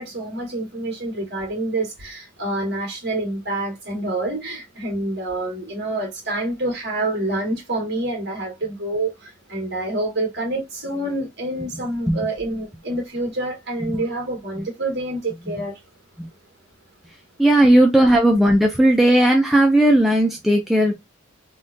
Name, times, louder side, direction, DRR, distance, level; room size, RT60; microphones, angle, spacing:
voice 1, 0.0-15.8, right 2 dB, 50° right, 1.8 m, -27 dB
voice 2, 17.4-20.9, right 1 dB, ahead, 0.4 m, -15 dB
3.5 x 2.3 x 2.6 m
head